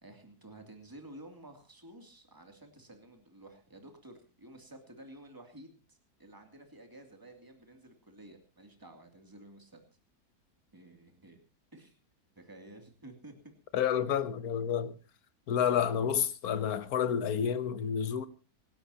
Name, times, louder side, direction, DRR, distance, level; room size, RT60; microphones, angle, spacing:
voice 1, 0.0-9.8 10.7-11.4 11.7-12.0 12.3-13.3, right 1 dB, 15° right, 2.7 m, -52 dB
voice 2, 13.7-14.9 15.5-18.3, left 8 dB, 75° left, 1.5 m, -29 dB
26.0 x 12.0 x 2.9 m
omnidirectional pair, 1.6 m